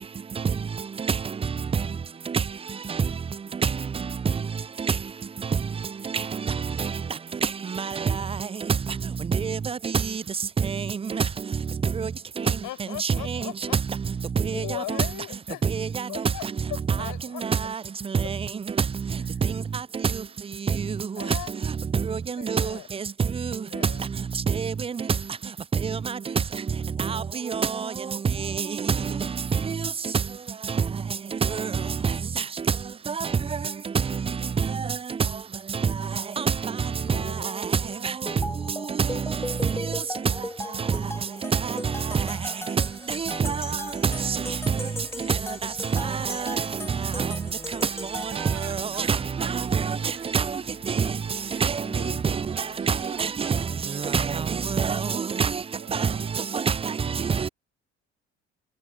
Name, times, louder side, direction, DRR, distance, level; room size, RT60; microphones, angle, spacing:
voice 1, 9.3-9.9 10.6-10.8 11.1-11.2 12.0-12.1 13.0-13.4 14.4-14.6 15.7-16.0 17.4-17.6 18.3-18.4 21.9-22.7 24.6-24.7 25.8-26.0 27.0-27.9 28.6-28.9 29.6-29.8 31.5-31.7 32.0-32.1 33.1-33.3 34.6-34.7 36.4-36.7 37.1-37.2 38.0-38.1 39.0-39.1 41.5-41.8 42.1-42.3 42.7-42.8 43.1-43.7 44.3-44.4 45.3-45.4 45.9-46.6 47.2-47.3 48.6-50.0 50.3-50.4 50.9-51.1 51.6-52.4 52.9-53.6 54.0-55.6 55.9-56.1 56.5-57.5, right 6 dB, 15° right, 0.5 m, -26 dB
voice 2, 12.4-13.8 14.5-15.7 16.1-16.4 17.0-17.5 21.2-21.5 22.4-22.9 23.6-24.1 37.1-37.5 37.8-38.0 40.6-41.0 51.8-52.3 56.2-56.3, left 16 dB, 60° left, 6.1 m, -39 dB
sound 1, 38.3-48.9, left 1 dB, 5° left, 3.3 m, -37 dB
Mechanical fan, 43.1-55.1, left 4 dB, 25° left, 2.3 m, -52 dB
voice 3, 48.2-50.4 51.3-51.6 52.5-54.2 55.7-56.6 56.9-57.3, right 13 dB, 50° right, 1.9 m, -46 dB
figure-of-eight pair, 50°, 36 cm